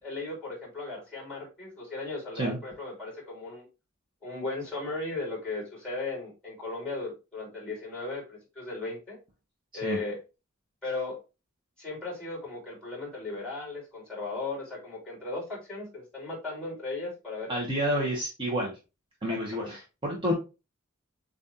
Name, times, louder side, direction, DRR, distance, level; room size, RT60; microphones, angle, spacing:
voice 1, 0.0-3.7 4.2-9.2 9.7-10.2 10.8-11.2 11.8-18.0 19.3-19.7, left 3 dB, 5° left, -3 dB, 2.9 m, -36 dB
voice 2, 17.5-18.8 19.2-20.3, equal, 25° right, -2 dB, 0.9 m, -29 dB
7.2 x 2.5 x 2.8 m, 0.28 s
head